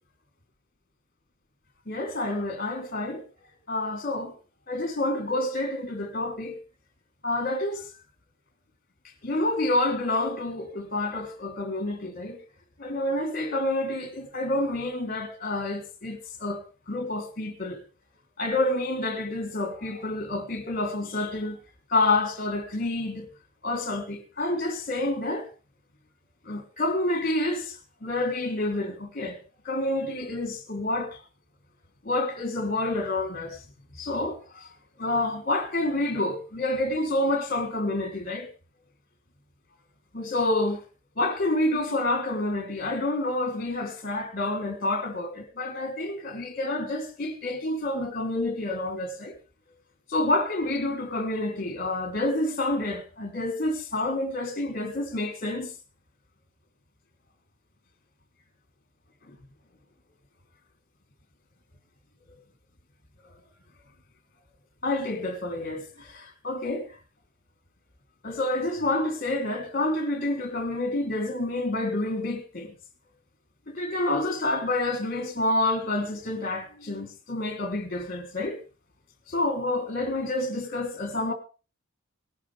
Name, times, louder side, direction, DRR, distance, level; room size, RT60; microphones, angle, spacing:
voice 1, 1.9-3.2 3.7-4.3 4.7-6.6 7.2-7.8 9.2-12.4 12.8-17.8 18.4-21.6 21.9-23.2 23.6-25.5 26.5-27.8 28.0-29.4 29.6-31.2 32.0-33.6 34.0-34.7 35.0-38.5 40.1-40.8 41.2-49.4 50.1-55.7 59.3-59.4 64.8-66.9 68.2-72.7 73.7-78.6 79.3-81.3, left 2 dB, 45° left, 3.4 m, -28 dB
19.0 x 11.5 x 3.5 m
head